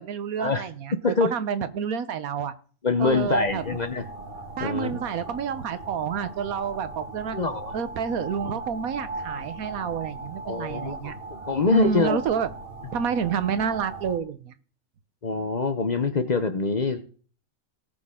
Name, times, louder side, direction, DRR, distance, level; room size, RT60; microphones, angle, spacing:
voice 1, 0.0-2.5 3.0-3.6 4.6-7.4 7.7-11.1 11.7-12.5 12.9-14.5, right 7 dB, 85° right, 12 dB, 1.4 m, -29 dB
voice 2, 2.8-4.0 4.6-4.9 7.3-7.7 10.4-11.1 11.5-12.2 15.2-17.0, left 3 dB, 40° left, 9 dB, 0.8 m, -24 dB
sound 1, 3.0-14.2, right 2 dB, 40° right, 1.4 m, -39 dB
18.5 x 6.4 x 3.7 m, 0.41 s
omnidirectional pair, 1.5 m